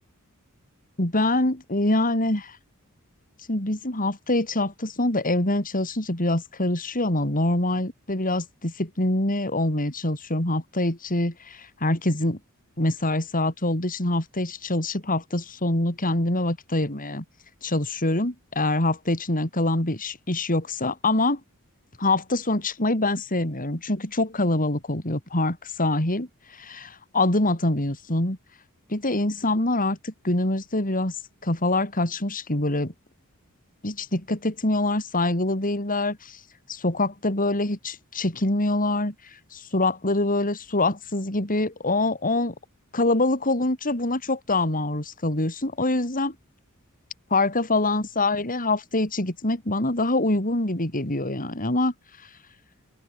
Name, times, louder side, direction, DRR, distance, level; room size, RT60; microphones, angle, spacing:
voice 1, 1.0-2.6 3.5-12.4 12.8-17.2 17.6-21.4 22.0-26.3 26.6-28.4 28.9-31.1 31.4-32.9 33.8-36.4 36.7-39.1 39.5-42.5 42.9-46.3 47.3-51.9, left 2 dB, 40° left, 4.7 m, -25 dB
open air
head